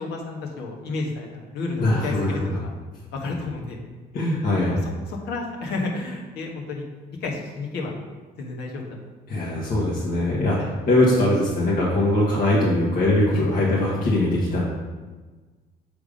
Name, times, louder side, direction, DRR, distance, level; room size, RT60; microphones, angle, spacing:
voice 1, 0.0-2.7 3.1-3.8 4.7-6.9 7.2-7.9 8.4-8.9 10.6-10.7 13.3-13.5, left 3 dB, 80° left, 0 dB, 1.3 m, -31 dB
voice 2, 1.8-2.6 4.1-4.8 9.3-10.6 10.9-14.7, left 1 dB, 55° left, -7 dB, 1.5 m, -21 dB
6.7 x 3.5 x 5.1 m, 1.3 s
cardioid pair, 110°, 17 cm